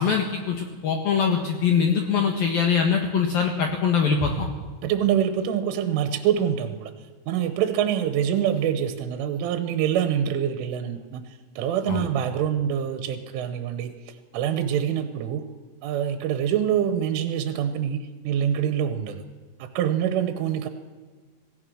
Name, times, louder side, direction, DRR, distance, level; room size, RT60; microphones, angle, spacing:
voice 1, 0.0-4.5 11.9-12.0, left 6 dB, 60° left, 2 dB, 2.8 m, -23 dB
voice 2, 4.8-6.9 7.3-15.4 15.8-19.3 19.6-20.7, right 9 dB, 80° right, 9 dB, 3.5 m, -25 dB
26.5 x 17.5 x 6.4 m, 1.4 s
omnidirectional pair, 5.8 m